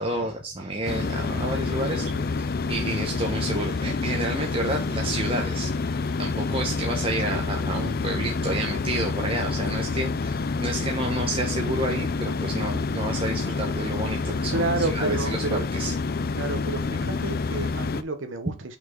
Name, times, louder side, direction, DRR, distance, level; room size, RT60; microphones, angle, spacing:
voice 1, 0.0-2.1 2.3-15.9 18.5-18.6, right 1 dB, 25° right, 1 dB, 0.9 m, -30 dB
sound 1, 0.8-18.0, left 4 dB, 45° left, 0.5 m, -28 dB
voice 2, 1.8-2.2 14.5-15.6 16.3-18.8, right 3 dB, 65° right, 6 dB, 0.9 m, -30 dB
5.7 x 4.2 x 4.4 m, 0.28 s
head